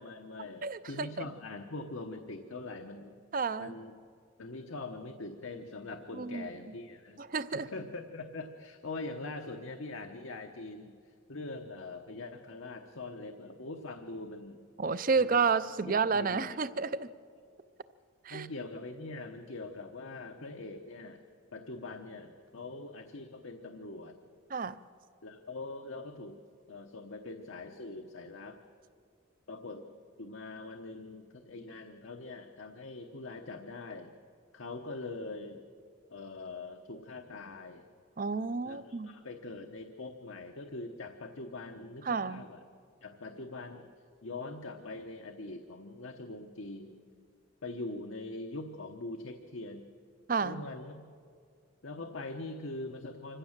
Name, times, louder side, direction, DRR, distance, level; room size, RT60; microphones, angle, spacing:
voice 1, 0.0-3.1 3.6-3.9 4.4-7.2 7.5-10.9 11.3-14.6 15.1-15.4 15.9-16.4 18.3-21.2 21.5-24.2 25.2-26.4 26.7-28.6 29.5-34.1 34.5-35.6 36.1-37.9 38.6-42.6 43.0-43.9 44.2-47.0 47.6-49.9 50.4-51.0 51.8-53.4, left 2 dB, 75° left, 4 dB, 1.0 m, -43 dB
voice 2, 0.6-1.1 3.3-3.7 6.1-6.5 7.2-7.7 14.8-17.1 18.2-18.5 24.5-24.8 38.2-39.1 42.0-42.5 50.3-50.7, right 5 dB, 40° right, 15 dB, 0.5 m, -30 dB
25.5 x 15.5 x 7.3 m, 2.2 s
head